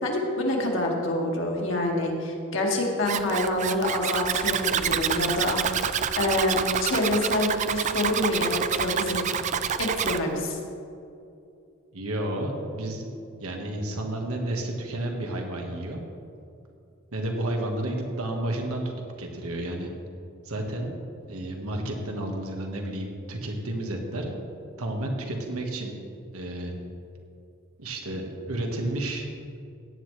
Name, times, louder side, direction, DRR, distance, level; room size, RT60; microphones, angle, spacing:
voice 1, 0.0-9.3 9.8-10.6, left 1 dB, 60° left, -1 dB, 2.0 m, -27 dB
Zipper (clothing), 3.0-10.2, right 8 dB, 35° right, 0.3 m, -28 dB
voice 2, 11.9-13.1 13.4-16.0 17.1-18.8 19.2-19.9 20.4-21.0 21.2-24.4 24.8-26.0 26.3-26.7 27.8-29.6, right 1 dB, 85° right, 2 dB, 1.5 m, -31 dB
17.0 x 9.5 x 3.3 m, 2.6 s
head